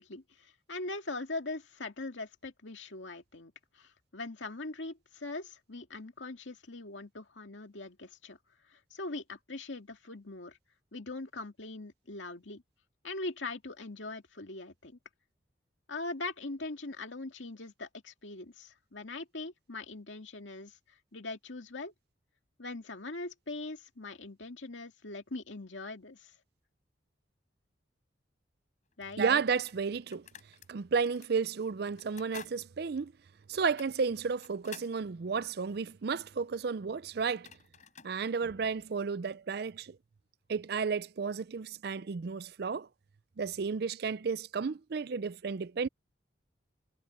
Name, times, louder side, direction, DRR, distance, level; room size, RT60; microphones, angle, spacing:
voice 1, 0.0-8.4 8.7-10.6 10.9-12.6 13.0-15.0 15.9-21.9 22.6-26.3 29.0-29.2, left 2 dB, 85° left, 2.3 m, -41 dB
sound 1, 28.9-29.0 29.7-30.7 31.1-31.3 31.9-32.6 32.9-33.0 33.6-35.0 36.9-37.0 37.3-38.2, left 7 dB, 40° left, 7.7 m, -50 dB
voice 2, 29.2-30.2 30.7-33.1 33.5-37.5 38.0-40.0 40.5-42.9 43.4-45.9, right 5 dB, 55° right, 0.5 m, -32 dB
head